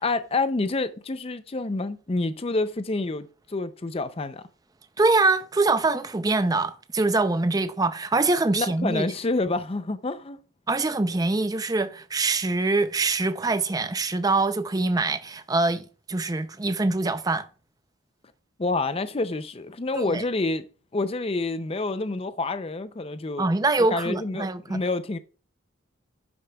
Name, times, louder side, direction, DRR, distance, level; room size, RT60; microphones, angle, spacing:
voice 1, 0.0-4.4 8.5-10.4 18.6-20.6 20.9-23.5 23.9-25.2, left 3 dB, 30° left, 0.5 m, -28 dB
voice 2, 5.0-9.1 10.7-17.4 19.9-20.2 23.4-24.8, right 3 dB, 20° right, 0.5 m, -24 dB
11.5 x 8.5 x 2.3 m
head